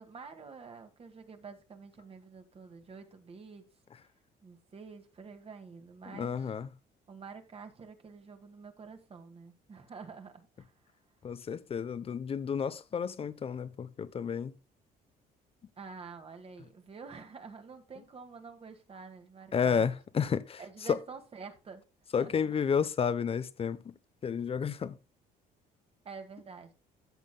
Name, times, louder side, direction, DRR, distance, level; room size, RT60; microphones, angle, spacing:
voice 1, 0.0-3.6 4.4-6.5 7.1-10.7 15.8-19.9 20.6-21.8 22.2-22.5 26.0-26.7, right 5 dB, 35° right, 2.0 m, -48 dB
voice 2, 6.1-6.7 11.2-14.5 19.5-20.6 20.9-21.0 22.1-23.8 24.2-25.0, left 6 dB, 35° left, 0.8 m, -31 dB
14.0 x 7.2 x 2.3 m
cardioid pair, 110°, 17 cm